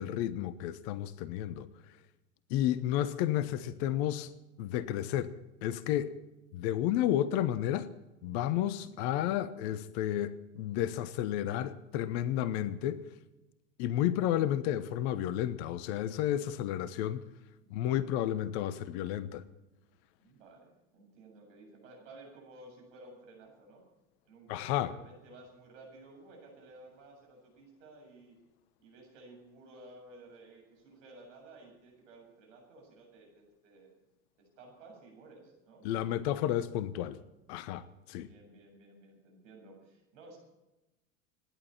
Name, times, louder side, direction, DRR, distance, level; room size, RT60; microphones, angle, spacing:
voice 1, 0.0-1.7 2.5-4.3 4.6-5.3 5.6-6.1 6.5-7.9 8.2-13.0 13.8-17.2 17.7-19.4 24.5-24.9 35.8-37.2 37.5-38.3, left 12 dB, 50° left, 1.1 m, -31 dB
voice 2, 17.6-18.0 20.2-23.8 24.2-28.4 28.8-33.9 34.4-35.9 38.1-40.4, right 2 dB, 65° right, 7.7 m, -54 dB
26.0 x 11.5 x 4.4 m
figure-of-eight pair, 80°, 40 cm